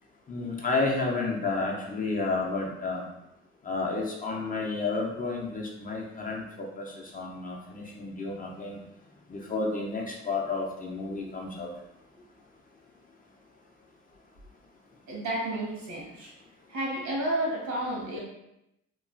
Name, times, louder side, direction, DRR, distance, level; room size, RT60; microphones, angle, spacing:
voice 1, 0.3-3.0 3.6-8.8 9.3-11.7, left 3 dB, 30° left, -2 dB, 0.5 m, -31 dB
voice 2, 15.1-16.3 16.7-18.2, right 1 dB, 70° right, -4 dB, 1.3 m, -31 dB
3.0 x 2.3 x 2.4 m, 0.86 s
cardioid pair, 90°, 30 cm